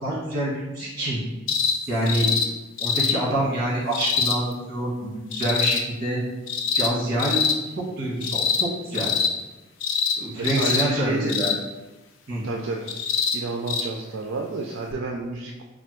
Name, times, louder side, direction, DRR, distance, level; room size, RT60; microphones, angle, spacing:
voice 1, 0.0-1.2 1.9-2.3 2.8-6.2 6.7-7.4 8.0-9.1 10.2-11.5 12.3-12.4, right 1 dB, 50° right, -5 dB, 1.4 m, -26 dB
sound 1, 1.5-1.8 2.1-2.5 2.8-3.2 3.9-4.4 5.3-5.8 6.5-6.9 7.2-7.6 8.2-8.7 8.9-9.3 9.8-10.2 10.4-10.9 11.3-11.6 12.9-13.4 13.7-13.8 14.9-15.0, left 6 dB, 80° left, 0.4 m, -24 dB
voice 2, 10.4-11.6 12.4-12.9 13.3-15.6, right 3 dB, 80° right, 1 dB, 0.4 m, -30 dB
3.4 x 2.5 x 4.3 m, 1.1 s
head